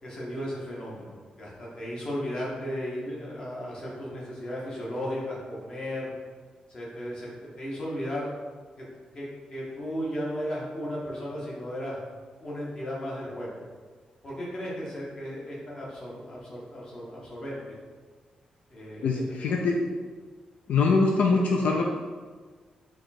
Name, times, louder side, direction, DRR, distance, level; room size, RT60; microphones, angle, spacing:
voice 1, 0.0-6.1 6.7-8.3 8.8-8.9 9.1-12.0 12.4-13.6 14.2-17.6 18.7-19.5, equal, 35° left, -5 dB, 1.2 m, -35 dB
voice 2, 19.0-19.8 20.7-21.9, left 4 dB, 80° left, 0 dB, 0.4 m, -23 dB
4.8 x 2.4 x 4.2 m, 1.5 s
wide cardioid pair, 145°, 2 cm